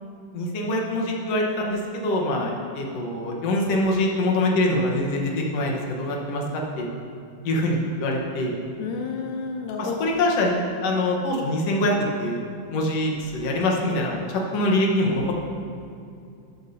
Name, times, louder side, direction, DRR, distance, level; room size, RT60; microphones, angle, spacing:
voice 1, 0.3-6.9 7.4-8.6 9.8-12.4 12.7-15.3, left 1 dB, 60° left, -1 dB, 1.9 m, -24 dB
voice 2, 8.8-10.0, left 5 dB, 80° left, 2 dB, 1.6 m, -31 dB
13.5 x 11.0 x 2.8 m, 2.5 s
omnidirectional pair, 4.0 m